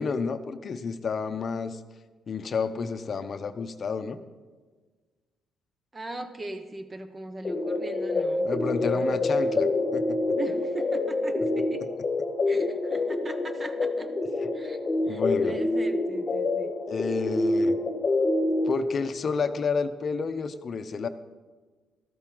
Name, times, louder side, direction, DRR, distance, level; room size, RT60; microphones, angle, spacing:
voice 1, 0.0-1.8 2.3-4.2 8.4-9.7 9.9-10.2 11.8-11.9 14.4-14.5 15.1-15.6 16.9-17.8 18.7-21.1, left 5 dB, 50° left, 9 dB, 0.7 m, -30 dB
voice 2, 5.9-8.5 8.9-9.2 10.3-11.9 12.5-14.1 14.5-14.8 15.1-16.8, right 2 dB, 25° right, 9 dB, 0.9 m, -39 dB
sound 1, 7.4-18.7, left 2 dB, 35° left, 1.3 m, -27 dB
13.0 x 13.0 x 3.8 m, 1.4 s
cardioid pair, 90°, 0 cm